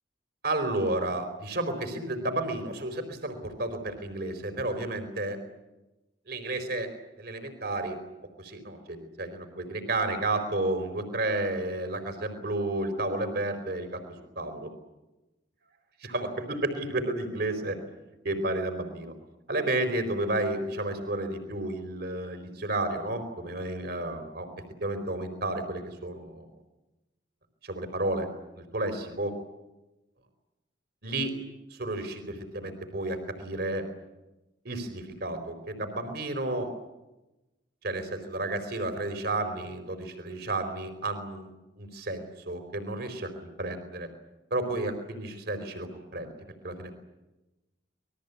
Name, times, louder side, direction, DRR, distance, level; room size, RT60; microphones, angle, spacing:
voice 1, 0.4-5.4 6.3-6.9 7.2-8.0 8.4-14.0 14.4-14.7 16.0-17.8 18.2-19.1 19.5-24.5 24.8-26.5 27.6-28.3 28.6-29.4 31.0-31.3 31.7-33.8 34.6-36.7 37.8-44.1 44.5-46.3 46.6-46.9, right 2 dB, 60° right, 8 dB, 4.5 m, -32 dB
28.5 x 21.5 x 8.4 m, 1.0 s
head